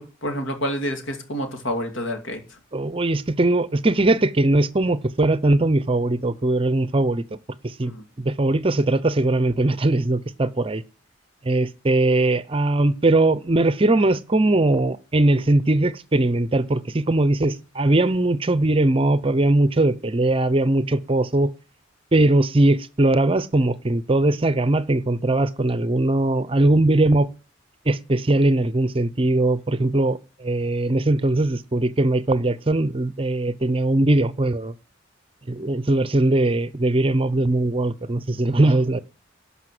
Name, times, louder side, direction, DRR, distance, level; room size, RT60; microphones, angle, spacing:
voice 1, 0.0-2.4 7.8-8.0, equal, 80° left, 2.5 m, -28 dB
voice 2, 2.7-7.4 7.8-7.9 8.2-10.8 11.4-21.5 22.1-27.3 27.9-34.7 35.5-39.0, right 2 dB, 30° right, 0.6 m, -20 dB
12.5 x 5.6 x 7.7 m
head